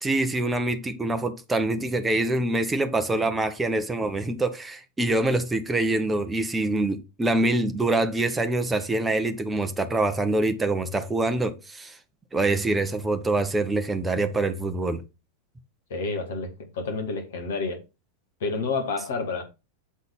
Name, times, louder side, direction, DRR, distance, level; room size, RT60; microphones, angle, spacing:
voice 1, 0.0-12.0 12.3-15.0, right 2 dB, 10° right, 0.9 m, -25 dB
voice 2, 15.9-17.8 18.4-19.4, left 4 dB, 60° left, 1.9 m, -29 dB
7.4 x 4.0 x 5.2 m
figure-of-eight pair, 90°, 0 cm